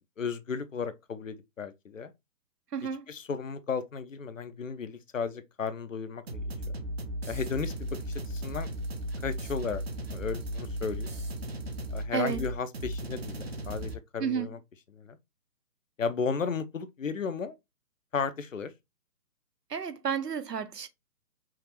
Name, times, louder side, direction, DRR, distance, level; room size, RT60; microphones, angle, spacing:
voice 1, 0.2-2.1 3.1-6.8 7.3-8.7 9.2-11.1 11.9-14.6 14.9-15.2 16.0-17.5 18.1-18.7, left 5 dB, 55° left, 0.6 m, -34 dB
voice 2, 2.7-3.0 12.1-12.4 14.2-14.5 19.7-20.9, right 7 dB, 75° right, 0.8 m, -31 dB
sound 1, 6.3-13.9, equal, 40° right, 0.6 m, -36 dB
5.7 x 2.4 x 3.1 m
figure-of-eight pair, 140°, 49 cm